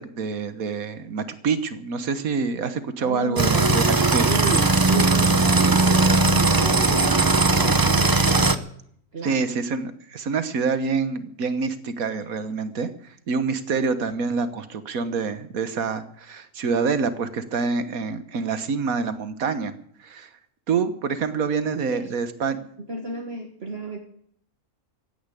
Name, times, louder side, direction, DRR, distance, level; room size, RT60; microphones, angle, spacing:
voice 1, 0.0-4.3 9.2-12.9 13.3-19.7 20.0-20.3 20.7-22.6, right 5 dB, 70° right, 11 dB, 1.7 m, -26 dB
voice 2, 3.0-3.8 4.2-8.3 9.1-9.5 21.2-21.5 21.9-22.2 22.4-24.0, right 3 dB, 45° right, 4 dB, 1.7 m, -32 dB
sound 1, 3.4-8.5, right 3 dB, 25° right, 0.5 m, -19 dB
15.5 x 10.0 x 8.5 m, 0.68 s
omnidirectional pair, 1.5 m